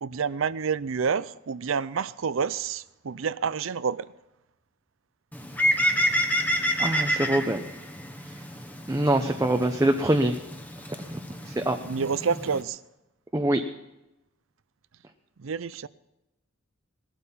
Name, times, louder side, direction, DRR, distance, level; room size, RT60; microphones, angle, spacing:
voice 1, 0.0-4.1 11.9-12.8 15.4-15.9, right 6 dB, 70° right, 0.5 m, -28 dB
Bird, 5.3-12.6, equal, 10° left, 1.2 m, -29 dB
voice 2, 6.8-7.6 8.9-10.4 11.1-11.8 13.3-13.6, right 1 dB, 15° right, 0.8 m, -24 dB
19.5 x 12.0 x 5.8 m
head